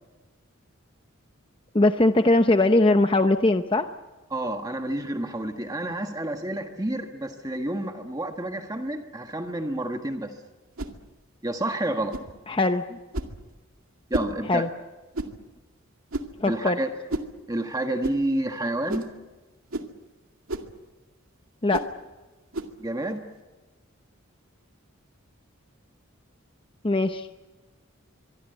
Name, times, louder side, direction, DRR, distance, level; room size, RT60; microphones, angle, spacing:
voice 1, 1.7-3.9 12.5-13.0 14.5-14.7 16.4-16.8 21.6-21.8 26.8-27.3, left 2 dB, 25° left, 8 dB, 0.7 m, -21 dB
voice 2, 4.3-10.4 11.4-12.2 14.1-14.7 16.5-16.9 17.5-19.0 22.8-23.2, right 1 dB, 20° right, 5 dB, 1.5 m, -29 dB
sound 1, 10.8-11.0 12.1-12.3 13.1-13.4 14.1-14.3 15.1-15.4 16.1-16.4 17.1-17.3 18.0-18.2 18.9-19.1 19.7-19.9 20.5-20.7 21.7-21.9 22.5-22.7, right 2 dB, 80° right, 2.2 m, -31 dB
24.5 x 24.5 x 8.1 m, 1.2 s
head